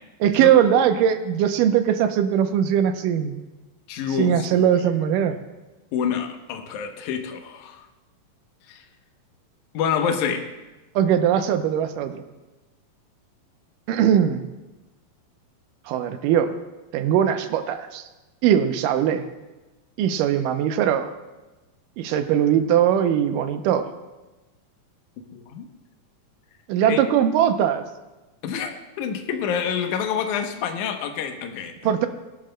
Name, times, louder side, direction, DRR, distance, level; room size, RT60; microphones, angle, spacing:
voice 1, 0.2-3.4 4.2-5.4 11.0-12.2 13.9-14.4 15.9-16.6 16.9-18.0 18.4-19.2 20.0-21.1 22.0-23.9 26.7-27.8 31.8-32.1, right 9 dB, 80° right, 8 dB, 2.2 m, -20 dB
voice 2, 3.9-4.7 5.9-7.8 8.7-8.8 9.7-10.4 25.3-25.7 26.9-27.0 28.4-31.9, left 7 dB, 70° left, 5 dB, 2.2 m, -27 dB
21.0 x 11.5 x 2.2 m, 1.1 s
omnidirectional pair, 4.1 m